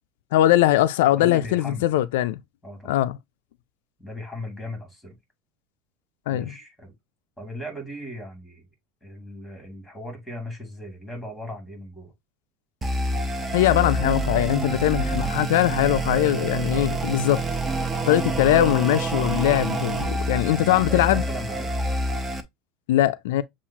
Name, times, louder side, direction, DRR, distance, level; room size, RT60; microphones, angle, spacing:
voice 1, 0.3-2.4 2.9-3.2 6.3-6.5 13.5-17.4 18.1-21.2 22.9-23.4, left 14 dB, 85° left, 0.3 m, -21 dB
voice 2, 1.1-1.9 2.6-3.0 4.0-5.2 6.3-6.9 7.4-8.7 9.0-12.1 18.2-18.4 20.5-21.7, left 1 dB, ahead, 2.5 m, -38 dB
sound 1, 12.8-22.4, right 2 dB, 15° right, 0.7 m, -27 dB
7.1 x 2.4 x 2.8 m
supercardioid pair, 130°, 0 cm